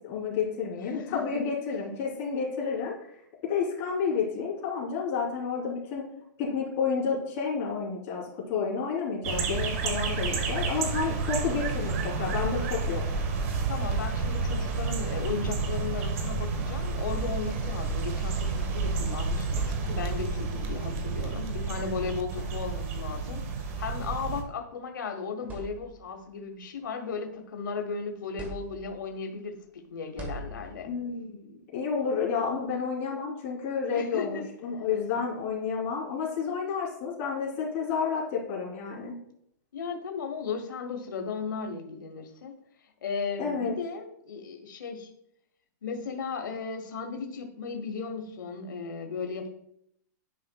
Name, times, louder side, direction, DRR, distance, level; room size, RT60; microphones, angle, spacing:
voice 1, 0.0-3.1 3.4-6.0 6.4-13.0 30.9-39.1 43.4-43.7, left 5 dB, 30° left, -4 dB, 2.9 m, -30 dB
voice 2, 0.8-1.4 13.7-30.9 33.9-34.5 39.7-42.5 43.0-45.1 45.8-49.5, left 5 dB, 85° left, 4 dB, 0.9 m, -36 dB
sound 1, 9.2-24.4, right 4 dB, 45° right, 1.0 m, -30 dB
sound 2, 19.5-20.4 21.6-21.8 22.3-23.1 24.2-24.4 24.9-25.0 25.4-26.2 26.7-27.8 28.4-29.2 30.2-31.1, right 2 dB, 15° right, 1.1 m, -43 dB
10.0 x 5.3 x 2.2 m, 0.74 s
hypercardioid pair, 155°, 10 cm